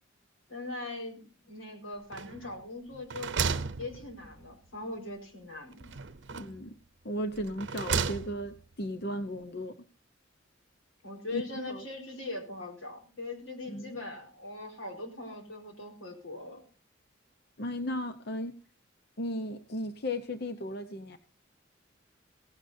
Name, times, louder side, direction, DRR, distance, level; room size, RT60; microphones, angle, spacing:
voice 1, 0.5-3.3 3.8-5.9 6.3-6.5 11.0-16.6, left 2 dB, 90° left, 1 dB, 4.6 m, -41 dB
sound 1, 2.1-2.6 2.9-4.5 5.8-6.7 7.3-8.6, right 5 dB, 60° right, 0.8 m, -34 dB
voice 2, 6.3-6.7 7.0-9.8 11.3-11.8 13.7-14.0 17.6-18.5 19.2-21.2, equal, 55° left, 8 dB, 0.9 m, -35 dB
17.0 x 16.0 x 2.7 m, 0.33 s
head